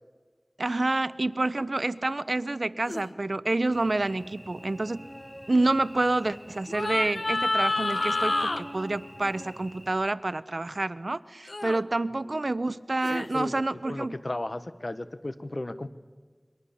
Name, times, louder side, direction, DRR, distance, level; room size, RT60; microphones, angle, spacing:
voice 1, 0.6-5.0 5.5-14.2, right 2 dB, 80° right, 16 dB, 0.7 m, -28 dB
sound 1, 2.9-3.1 6.7-8.6 11.5-11.8 13.0-13.3, left 2 dB, 85° left, 1.0 m, -28 dB
Cricket / Buzz, 3.7-9.9, equal, 20° left, 5.1 m, -46 dB
voice 2, 13.9-15.9, left 2 dB, 60° left, 11 dB, 1.2 m, -34 dB
29.0 x 23.5 x 7.1 m, 1.5 s
wide cardioid pair, 40°, 0 cm